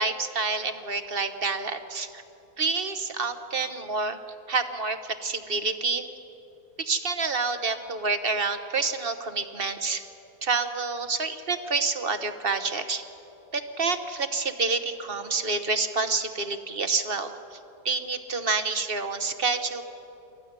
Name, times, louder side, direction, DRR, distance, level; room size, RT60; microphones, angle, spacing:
voice 1, 0.0-2.2 2.6-4.2 4.5-6.0 6.8-10.0 10.4-13.0 13.5-17.6 17.8-19.8, right 4 dB, 40° right, 8 dB, 1.0 m, -28 dB
26.0 x 14.5 x 9.5 m, 3.0 s
omnidirectional pair, 1.8 m